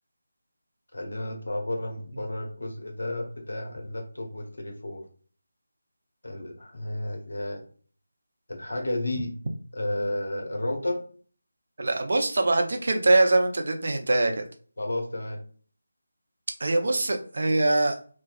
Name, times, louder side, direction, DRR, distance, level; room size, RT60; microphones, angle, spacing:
voice 1, 0.9-5.0 6.2-7.6 8.5-9.3 9.7-11.0 14.8-15.4, left 1 dB, 60° left, 2 dB, 0.9 m, -32 dB
voice 2, 11.8-14.4 16.6-18.0, right 2 dB, 55° right, 5 dB, 0.5 m, -23 dB
3.0 x 2.3 x 2.5 m, 0.43 s
figure-of-eight pair, 160°, 0 cm